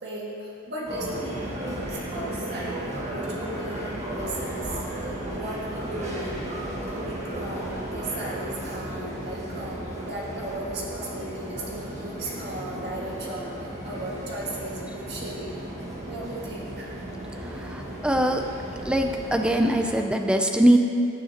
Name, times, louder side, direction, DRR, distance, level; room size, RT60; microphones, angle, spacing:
voice 1, 0.0-6.4 6.9-15.4 16.0-16.9, right 1 dB, 50° right, -5 dB, 1.8 m, -36 dB
sound 1, 0.9-20.0, right 1 dB, 30° right, 1.7 m, -34 dB
voice 2, 17.5-18.5 18.8-20.8, right 1 dB, 5° right, 4 dB, 0.4 m, -22 dB
16.5 x 6.6 x 2.9 m, 2.6 s
head